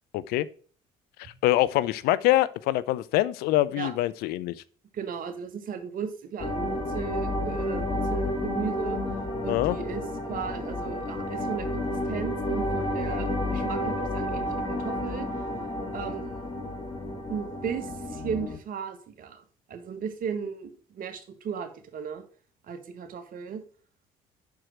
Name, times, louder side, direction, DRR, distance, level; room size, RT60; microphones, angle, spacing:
voice 1, 0.1-0.5 1.4-4.5 9.5-9.8, left 15 dB, 75° left, 0.5 m, -24 dB
voice 2, 4.9-9.0 9.4-10.0 10.3-15.3 15.9-16.3 17.3-19.4 19.7-22.2 22.7-23.6, right 7 dB, 60° right, 1.5 m, -36 dB
sound 1, 6.4-18.6, left 1 dB, 35° left, 2.2 m, -31 dB
6.2 x 4.6 x 5.9 m
supercardioid pair, 65°, 16 cm